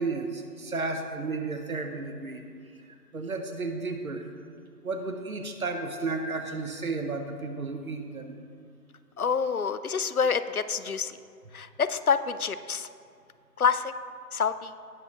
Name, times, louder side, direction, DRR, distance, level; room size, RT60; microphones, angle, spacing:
voice 1, 0.0-2.4 3.1-4.3 4.8-8.4, right 3 dB, 60° right, 5 dB, 1.2 m, -33 dB
voice 2, 9.2-11.2 11.5-12.9 13.6-13.9 14.3-14.7, left 6 dB, 65° left, 13 dB, 0.5 m, -27 dB
18.0 x 6.6 x 3.0 m, 2.2 s
figure-of-eight pair, 175°, 48 cm